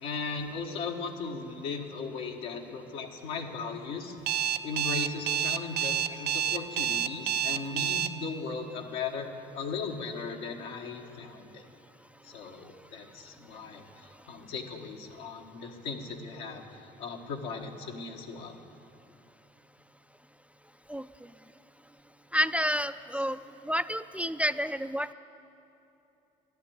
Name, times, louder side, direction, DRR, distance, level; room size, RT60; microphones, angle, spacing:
voice 1, 0.0-4.2 4.6-11.6 12.2-18.6 23.1-23.2, left 4 dB, 80° left, 1 dB, 1.5 m, -37 dB
Alarm, 4.3-8.1, right 8 dB, 65° right, 0.5 m, -28 dB
voice 2, 22.3-23.4 23.7-25.1, equal, 5° right, 12 dB, 0.4 m, -29 dB
12.5 x 11.0 x 8.7 m, 2.8 s
supercardioid pair, 70°, 19 cm